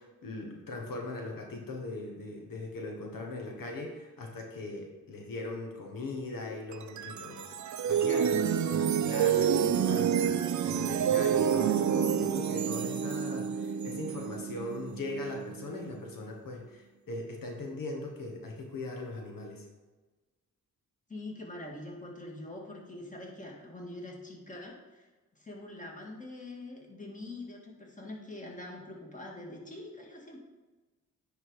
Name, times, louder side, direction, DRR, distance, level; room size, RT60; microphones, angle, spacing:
voice 1, 0.0-7.5 7.9-19.7, left 2 dB, 75° left, 1 dB, 1.3 m, -40 dB
sound 1, 6.7-16.0, right 8 dB, 55° right, 0.5 m, -29 dB
voice 2, 21.1-25.1 25.4-30.4, left 2 dB, 20° left, -1 dB, 2.0 m, -44 dB
9.6 x 3.7 x 4.7 m, 1.2 s
cardioid pair, 75°, 34 cm